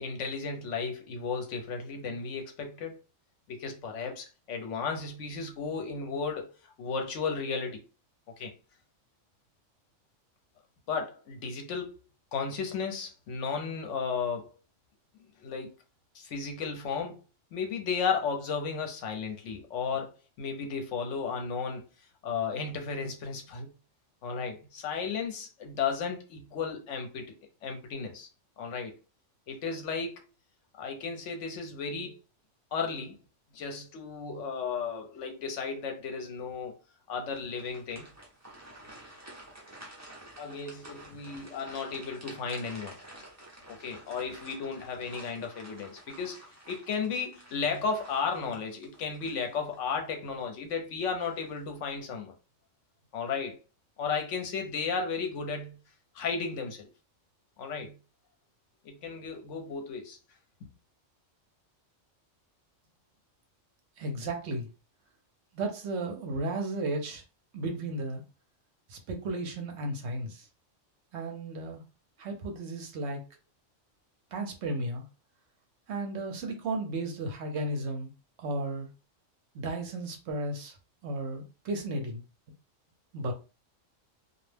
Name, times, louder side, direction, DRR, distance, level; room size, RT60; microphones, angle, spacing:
voice 1, 0.0-3.0 3.5-7.8 8.4-8.5 10.9-11.9 12.3-14.5 15.4-15.7 16.1-17.2 17.5-21.8 22.2-23.7 24.2-28.3 28.6-28.9 29.5-30.2 30.8-32.2 32.7-33.2 33.5-36.8 37.1-38.1 40.4-43.0 43.7-46.4 46.7-52.3 53.1-53.6 54.0-55.8 56.1-56.9 57.6-58.0 58.8-60.2, left 5 dB, 75° left, 1.0 m, -34 dB
sound 1, 37.3-49.9 50.4-50.5 51.1-51.6, right 1 dB, 20° right, 0.5 m, -50 dB
voice 2, 64.0-64.7 65.5-67.2 67.5-68.2 68.9-70.4 71.1-71.8 72.2-73.2 74.3-75.0 75.9-78.1 78.4-78.9 79.5-80.8 81.0-82.2 83.1-83.3, right 2 dB, 65° right, 0.9 m, -34 dB
2.4 x 2.1 x 3.2 m
omnidirectional pair, 1.3 m